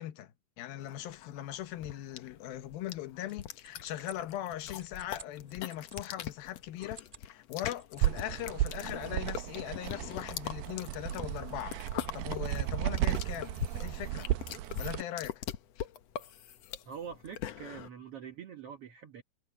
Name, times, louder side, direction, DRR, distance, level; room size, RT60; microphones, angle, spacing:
voice 1, 0.0-11.8 12.1-14.3 14.8-15.4 15.8-15.9, left 13 dB, 85° left, 2.9 m, -40 dB
sound 1, 0.9-17.9, left 10 dB, 65° left, 1.6 m, -42 dB
sound 2, 3.2-6.0 6.7-7.3 7.6-8.4, right 3 dB, 25° right, 1.2 m, -53 dB
sound 3, 8.0-15.0, right 14 dB, 80° right, 2.5 m, -34 dB
voice 2, 16.8-19.2, right 7 dB, 65° right, 1.5 m, -44 dB
omnidirectional pair, 4.1 m